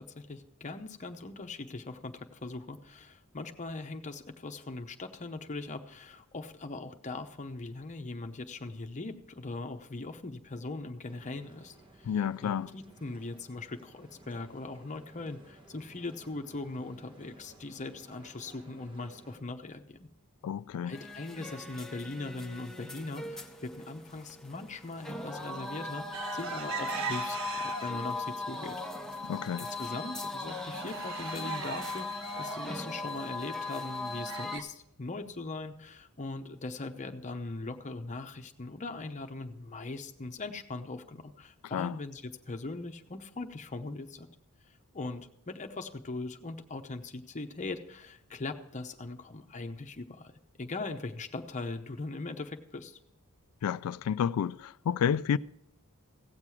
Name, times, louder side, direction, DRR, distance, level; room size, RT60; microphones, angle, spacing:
voice 1, 0.0-12.1 12.4-20.1 20.9-28.8 29.6-44.3 44.9-50.3 50.6-53.0, left 3 dB, 35° left, 0.8 m, -40 dB
sound 1, 11.1-19.4, right 2 dB, 20° right, 1.2 m, -57 dB
voice 2, 12.1-12.7 20.4-21.0 29.2-29.7 41.7-42.0 53.6-55.4, left 8 dB, 70° left, 0.3 m, -30 dB
sound 2, 20.9-34.6, left 2 dB, ahead, 0.7 m, -39 dB
sound 3, 26.1-28.1 28.6-29.2 29.6-29.7 30.0-34.6, right 6 dB, 60° right, 0.7 m, -40 dB
16.5 x 7.4 x 4.8 m
head